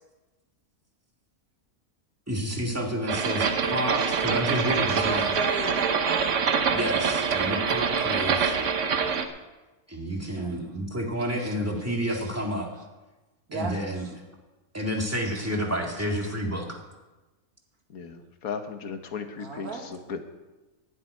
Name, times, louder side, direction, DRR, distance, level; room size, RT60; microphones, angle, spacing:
voice 1, 2.3-5.3 6.7-8.6 9.9-12.7 13.5-14.1 14.7-16.6, equal, 10° right, 0 dB, 1.9 m, -30 dB
sound 1, 3.1-9.3, right 6 dB, 60° right, 1.2 m, -25 dB
voice 2, 3.3-3.6 3.9-4.2 4.9-6.4 7.9-8.5 10.2-10.9 11.4-11.5 12.1-12.3 12.7-12.8 13.5-14.1 15.3-15.6 16.6-16.7 19.4-20.0, right 3 dB, 85° right, 3 dB, 2.2 m, -37 dB
voice 3, 17.9-20.2, left 5 dB, 75° left, 7 dB, 1.5 m, -36 dB
11.5 x 7.5 x 9.5 m, 1.1 s
omnidirectional pair, 1.5 m